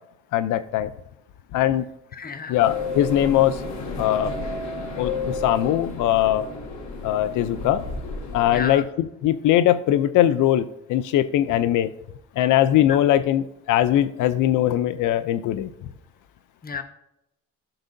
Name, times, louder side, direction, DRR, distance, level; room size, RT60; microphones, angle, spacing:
voice 1, 0.3-0.9 1.5-1.9 2.5-3.6 4.0-4.3 5.0-6.4 7.0-7.9 8.3-11.9 12.4-15.7, left 12 dB, 80° left, 14 dB, 0.5 m, -21 dB
voice 2, 2.1-2.6 8.5-8.9 12.9-13.0 16.6-16.8, left 6 dB, 30° left, 8 dB, 1.0 m, -32 dB
sound 1, 2.6-8.7, left 3 dB, 65° left, 1.5 m, -32 dB
11.5 x 6.5 x 2.6 m, 0.85 s
cardioid pair, 90°, 30 cm